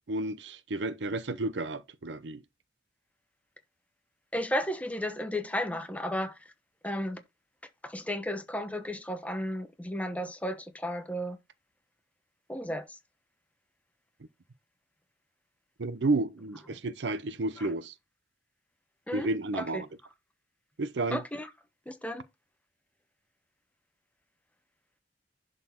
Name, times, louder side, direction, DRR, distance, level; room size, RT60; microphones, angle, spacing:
voice 1, 0.1-2.4 15.8-17.9 19.1-19.9 20.8-21.2, right 2 dB, 75° right, 0.7 m, -31 dB
voice 2, 4.3-6.3 6.8-7.2 7.8-11.4 12.5-13.0 17.6-17.7 19.1-19.8 21.1-21.5 21.9-22.2, equal, 10° left, 1.1 m, -33 dB
11.0 x 4.2 x 4.3 m
head